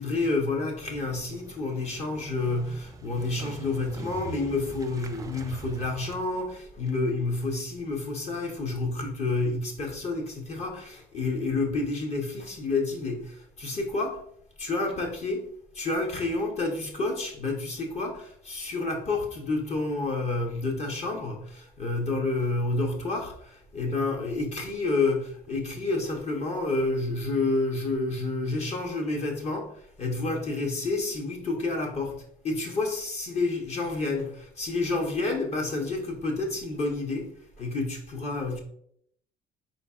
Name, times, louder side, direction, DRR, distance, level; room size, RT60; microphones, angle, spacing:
voice 1, 0.0-14.2 14.6-15.5 15.7-38.6, left 3 dB, 40° left, 0.7 m, -29 dB
Motorcycle, 0.8-7.5, right 3 dB, 20° right, 0.4 m, -43 dB
4.0 x 3.9 x 2.3 m
cardioid pair, 110°, 17 cm